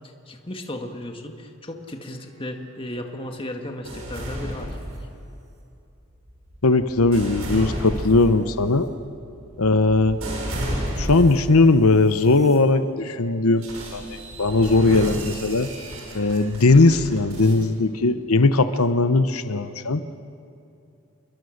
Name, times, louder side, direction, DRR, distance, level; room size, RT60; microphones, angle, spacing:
voice 1, 0.3-4.8, left 1 dB, 25° left, 4 dB, 1.9 m, -35 dB
sound 1, 3.8-5.4 6.1-11.6 12.2-12.6 13.6-17.6, right 1 dB, 80° right, 6.1 m, -32 dB
voice 2, 6.6-8.9 9.6-10.2 11.0-15.7 16.1-20.0, left 3 dB, 85° left, 11 dB, 0.9 m, -19 dB
29.0 x 22.0 x 6.6 m, 2.7 s
head